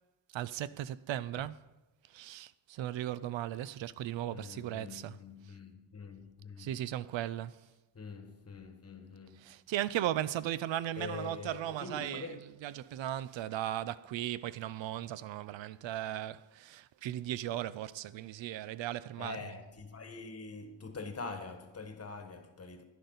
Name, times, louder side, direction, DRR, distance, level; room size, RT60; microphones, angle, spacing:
voice 1, 0.3-1.6 2.1-5.2 6.6-7.6 9.4-12.3 12.6-19.4, right 12 dB, 80° right, 0.6 m, -37 dB
voice 2, 4.3-6.9 7.9-9.5 11.0-12.4 19.2-22.8, left 4 dB, 35° left, 1.3 m, -45 dB
11.0 x 10.5 x 4.0 m
wide cardioid pair, 120°, 45 cm